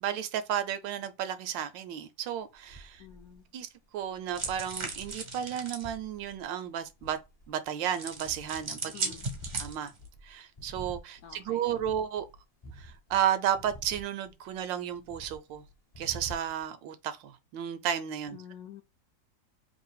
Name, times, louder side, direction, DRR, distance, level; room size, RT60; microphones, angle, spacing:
voice 1, 0.0-3.0 3.5-7.2 7.5-9.1 9.6-9.9 10.2-12.3 12.8-15.6 16.0-18.4, right 10 dB, 85° right, 1.3 m, -33 dB
sound 1, 2.5-3.4 4.0-7.7 8.0-8.7 9.1-14.6 14.9-16.7, equal, 40° left, 0.5 m, -48 dB
voice 2, 3.0-3.5 8.9-9.3 11.2-11.7 18.3-18.8, left 10 dB, 70° left, 0.9 m, -48 dB
sound 2, 4.3-5.9 7.9-10.1, right 4 dB, 45° right, 0.6 m, -37 dB
3.3 x 2.6 x 4.5 m
omnidirectional pair, 2.0 m